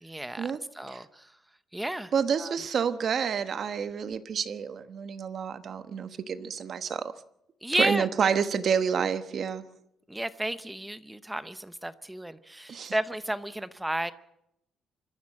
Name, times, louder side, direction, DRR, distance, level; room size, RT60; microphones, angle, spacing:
voice 1, 0.0-1.3 1.7-2.1 2.4-2.6 7.6-8.3 10.1-14.1, right 1 dB, 5° right, 13 dB, 0.7 m, -32 dB
voice 2, 2.1-7.1 7.8-9.6 12.7-12.9, right 7 dB, 40° right, 11 dB, 1.1 m, -29 dB
25.5 x 14.0 x 7.4 m, 0.80 s
cardioid pair, 145°, 0 cm